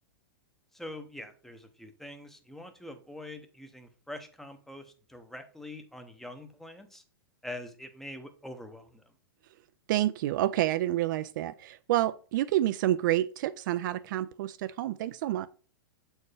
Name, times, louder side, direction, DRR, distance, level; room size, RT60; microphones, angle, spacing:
voice 1, 0.7-7.0 7.4-9.1, left 1 dB, 5° left, 0.7 m, -44 dB
voice 2, 9.9-15.5, right 14 dB, 55° right, 0.4 m, -28 dB
7.0 x 4.4 x 3.3 m
hypercardioid pair, 120°, 12 cm